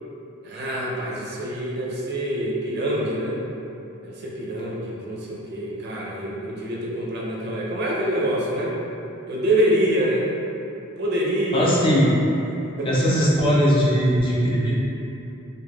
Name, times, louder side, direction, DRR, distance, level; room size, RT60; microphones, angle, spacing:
voice 1, 0.4-3.4 4.0-8.7 9.3-10.3 11.0-11.7 12.8-12.9, right 1 dB, 50° right, -4 dB, 0.4 m, -25 dB
voice 2, 11.5-12.1 12.8-14.7, equal, 25° left, -6 dB, 0.4 m, -19 dB
3.1 x 2.1 x 2.2 m, 2.8 s
head